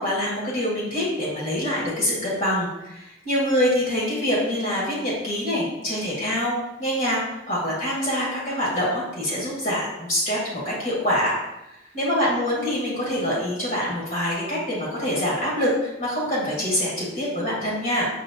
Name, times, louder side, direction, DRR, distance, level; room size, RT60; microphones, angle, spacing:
voice 1, 0.0-7.2 7.5-11.3 11.9-18.0, equal, 45° left, -5 dB, 1.4 m, -25 dB
5.5 x 2.9 x 2.7 m, 0.92 s
head